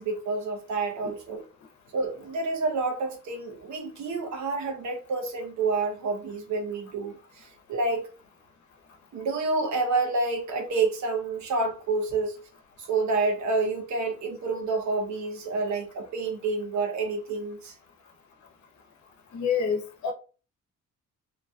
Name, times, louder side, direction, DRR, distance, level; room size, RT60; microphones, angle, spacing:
voice 1, 0.0-1.4 1.9-8.1 9.1-12.4 12.8-17.7, right 3 dB, 65° right, 0.9 m, -28 dB
voice 2, 19.3-20.1, left 6 dB, 65° left, 0.9 m, -27 dB
2.9 x 2.7 x 2.3 m
cardioid pair, 145°, 31 cm